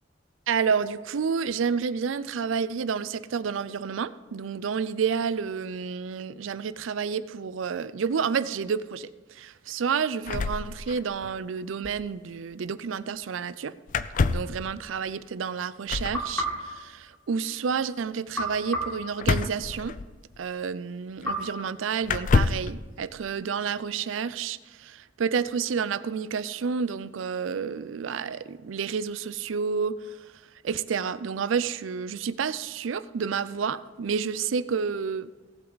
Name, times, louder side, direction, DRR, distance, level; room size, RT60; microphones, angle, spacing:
voice 1, 0.5-13.7 14.3-20.0 20.4-35.3, right 6 dB, 80° right, 16 dB, 0.4 m, -30 dB
sound 1, 10.3-11.3 11.6-11.7 11.8-12.1 13.9-14.6 15.9-16.2 19.2-20.4 21.2-21.3 22.0-22.7, left 4 dB, 40° left, 0.4 m, -26 dB
sound 2, 16.1-17.7 18.3-20.0 21.2-22.6, equal, 10° left, 2.9 m, -35 dB
18.0 x 7.9 x 4.0 m, 1.3 s
head